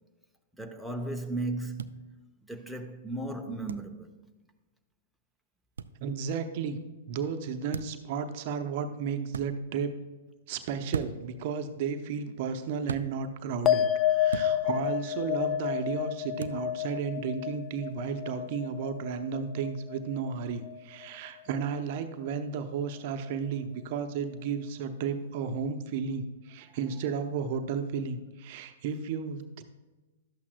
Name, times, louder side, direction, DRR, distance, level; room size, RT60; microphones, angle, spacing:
voice 1, 0.6-2.2 2.5-4.1, right 2 dB, ahead, 0.8 m, -36 dB
sound 1, 1.8-1.9 3.7-3.9 5.8-5.9 7.7-8.0 9.3-9.5 10.9-11.3 12.9-13.1 14.3-14.5 16.4-16.6, right 5 dB, 80° right, 0.3 m, -36 dB
voice 2, 6.0-6.8 7.1-9.9 10.5-29.6, right 6 dB, 50° right, 0.7 m, -33 dB
sound 2, 13.7-20.3 20.6-21.3, left 11 dB, 25° left, 0.4 m, -30 dB
12.0 x 8.4 x 2.3 m
hypercardioid pair, 115°, 0 cm